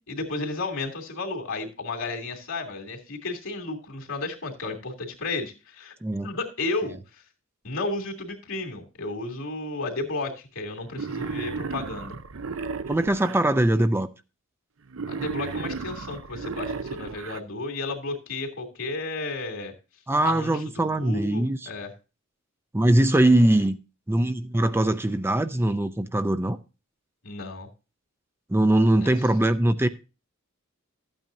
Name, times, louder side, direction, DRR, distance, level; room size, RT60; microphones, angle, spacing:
voice 1, 0.0-5.9 6.2-7.0 7.6-12.2 15.1-19.7 20.2-21.9 27.2-27.7 29.0-29.1, left 3 dB, 70° left, 2.8 m, -33 dB
Wild animals, 10.9-13.4 14.9-17.4, right 4 dB, 70° right, 0.7 m, -34 dB
voice 2, 12.9-14.1 20.1-21.7 22.7-23.8 24.1-26.6 28.5-29.9, right 1 dB, 10° right, 0.5 m, -21 dB
14.0 x 8.9 x 2.7 m
head